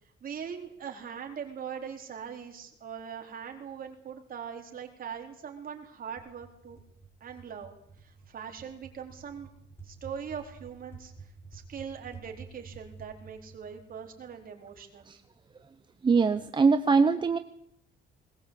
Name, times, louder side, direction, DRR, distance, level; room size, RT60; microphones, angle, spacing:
voice 1, 0.2-6.8 7.2-9.5 9.8-11.1 11.5-15.1, right 7 dB, 45° right, 3 dB, 4.1 m, -41 dB
sound 1, 6.2-14.8, right 4 dB, 10° left, 4.9 m, -51 dB
voice 2, 16.0-17.4, right 4 dB, 25° right, 9 dB, 0.8 m, -22 dB
20.5 x 19.5 x 8.4 m, 0.72 s
cardioid pair, 150°, 20 cm